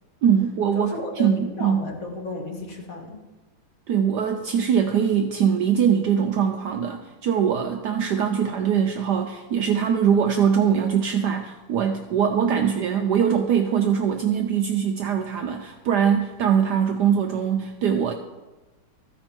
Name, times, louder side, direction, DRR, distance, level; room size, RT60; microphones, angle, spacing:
voice 1, 0.2-1.8 3.9-18.1, right 8 dB, 75° right, 4 dB, 1.0 m, -22 dB
voice 2, 0.7-3.2, left 1 dB, 50° left, 1 dB, 1.4 m, -33 dB
13.5 x 5.2 x 4.4 m, 1.1 s
omnidirectional pair, 2.2 m